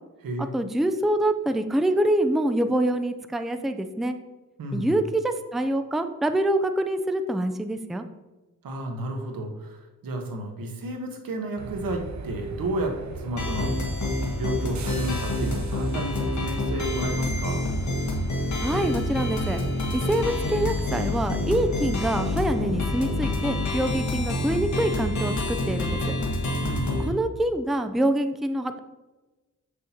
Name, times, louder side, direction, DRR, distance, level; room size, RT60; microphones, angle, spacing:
voice 1, 0.4-4.2 4.7-8.0 18.6-19.6 19.9-26.2 27.0-28.8, right 1 dB, ahead, 8 dB, 0.4 m, -25 dB
voice 2, 4.6-4.9 8.6-13.8 14.3-17.6 26.6-27.0, right 1 dB, 90° right, 3 dB, 1.2 m, -32 dB
sound 1, 11.6-23.7, right 4 dB, 55° right, 0.8 m, -40 dB
sound 2, 13.4-27.1, left 2 dB, 55° left, 1.6 m, -27 dB
7.4 x 6.3 x 2.8 m, 1.2 s
cardioid pair, 85°, 33 cm